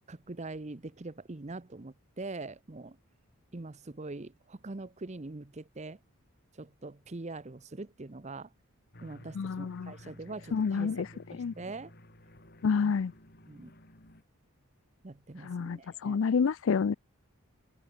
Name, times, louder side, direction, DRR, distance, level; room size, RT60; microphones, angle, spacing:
voice 1, 0.1-3.0 3.5-6.0 6.5-8.5 9.0-11.9 12.8-12.9 13.5-13.7 15.0-16.2, right 2 dB, 30° right, 0.7 m, -43 dB
sound 1, 8.9-14.2, left 1 dB, 45° left, 6.1 m, -53 dB
voice 2, 9.3-9.9 10.5-11.1 11.3-11.5 12.6-13.1 15.4-16.9, left 5 dB, 60° left, 0.4 m, -28 dB
head